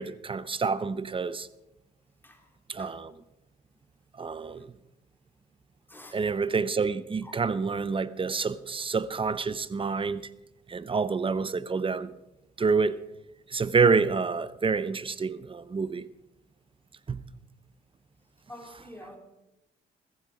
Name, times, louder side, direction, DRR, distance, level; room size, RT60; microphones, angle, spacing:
voice 1, 0.0-1.5 2.7-3.1 4.2-4.7 6.1-10.2 10.7-12.1 12.6-13.0 13.5-16.1 17.1-17.2, right 4 dB, 25° right, 0.7 m, -28 dB
voice 2, 5.9-6.2 7.2-7.3 18.5-19.2, left 1 dB, 10° left, 3.3 m, -47 dB
15.0 x 14.5 x 4.9 m
cardioid pair, 90°, 20 cm